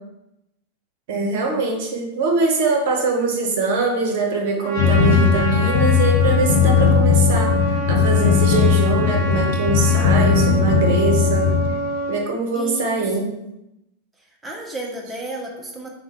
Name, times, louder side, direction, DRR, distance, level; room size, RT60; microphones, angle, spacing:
voice 1, 1.1-7.5 7.9-11.5 12.1-13.3, right 3 dB, 50° right, 1 dB, 0.7 m, -22 dB
Trumpet, 4.6-12.2, right 2 dB, 45° left, 1.2 m, -27 dB
sound 1, 4.8-11.7, left 6 dB, 65° left, 0.4 m, -18 dB
voice 2, 12.5-13.4 14.4-15.9, right 2 dB, 10° right, -1 dB, 0.5 m, -32 dB
3.2 x 2.1 x 3.2 m, 0.88 s
figure-of-eight pair, 90°, 0 cm